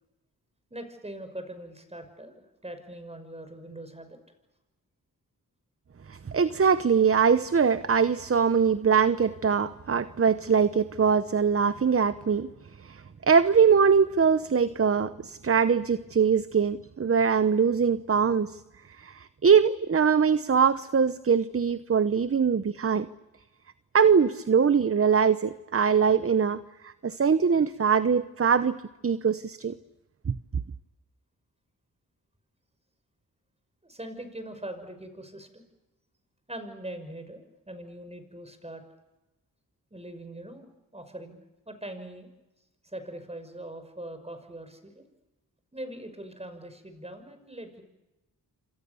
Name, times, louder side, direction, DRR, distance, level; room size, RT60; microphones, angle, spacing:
voice 1, 0.7-4.2 33.8-35.6 36.5-38.8 39.9-40.7 40.9-41.4 41.7-42.3 42.8-45.0 45.7-47.8, right 1 dB, 15° right, 8 dB, 5.9 m, -41 dB
voice 2, 6.1-12.5 12.8-18.6 19.0-23.1 23.9-29.7 30.3-30.4, right 6 dB, 35° right, 14 dB, 0.9 m, -23 dB
28.0 x 26.5 x 7.0 m, 1.0 s
cardioid pair, 70°, 37 cm